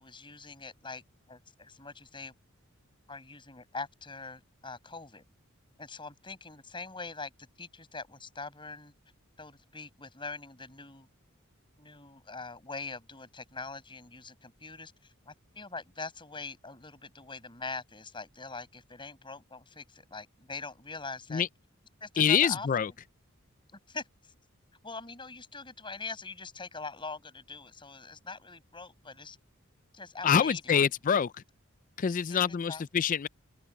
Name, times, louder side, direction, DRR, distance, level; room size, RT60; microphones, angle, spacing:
voice 1, 0.0-2.3 3.1-5.2 5.8-7.3 7.6-8.9 9.4-11.1 11.8-21.4 22.0-22.7 23.7-24.1 24.8-29.4 29.9-30.6 32.3-32.8, left 4 dB, 25° left, 7.1 m, -43 dB
voice 2, 22.2-22.9 30.2-31.3 32.0-33.3, left 7 dB, 40° left, 0.4 m, -25 dB
head